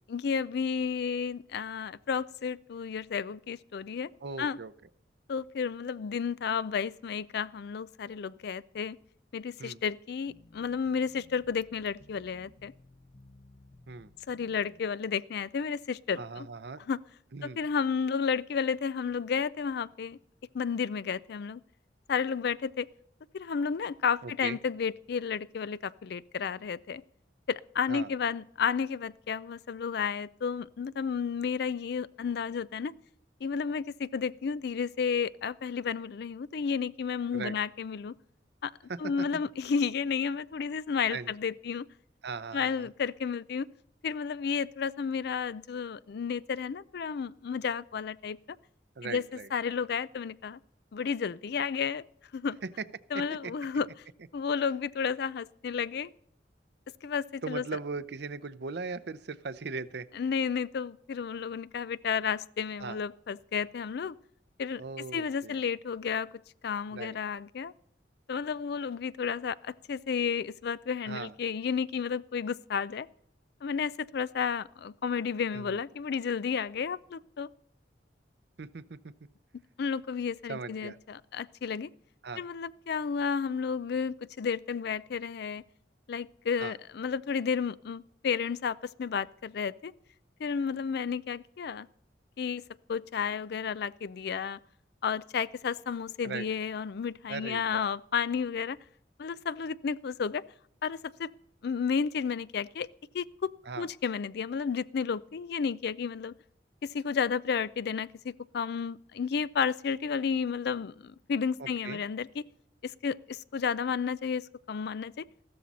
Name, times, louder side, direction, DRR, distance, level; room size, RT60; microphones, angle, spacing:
voice 1, 0.1-4.1 4.4-4.6 5.3-9.0 9.3-12.7 14.3-16.5 16.9-17.0 17.4-20.2 20.5-21.6 22.1-22.9 23.3-27.0 27.5-32.9 33.4-38.1 38.6-38.7 39.0-41.9 42.5-43.7 44.0-48.4 49.0-49.2 49.5-50.6 50.9-52.0 52.3-52.6 53.1-53.9 54.3-56.1 57.0-57.6 60.1-64.2 64.6-66.3 66.6-67.7 68.3-73.1 73.6-77.5 79.8-81.9 82.4-85.6 86.1-89.9 90.4-91.9 92.4-92.6 92.9-94.6 95.0-98.8 99.2-100.4 100.8-101.3 101.6-102.9 103.1-103.5 103.8-106.3 106.8-112.5 112.8-115.3, left 6 dB, 65° left, 0.4 m, -32 dB
voice 2, 4.2-4.7 9.6-9.8 13.9-14.1 16.2-16.8 17.3-17.6 24.2-24.6 27.9-28.1 37.3-37.5 38.9-39.0 41.1-41.3 42.2-42.9 49.0-49.5 53.1-53.5 57.4-60.1 62.8-63.0 64.8-65.6 66.9-67.2 71.1-71.3 75.5-75.8 78.6-79.0 80.5-81.0 82.2-82.4 86.6-86.7 96.2-96.4 97.3-97.9 103.7-103.9 111.6-112.0, right 4 dB, 65° right, 0.6 m, -39 dB
sound 1, 10.3-14.8, left 1 dB, 45° left, 1.0 m, -58 dB
14.5 x 13.5 x 4.1 m
head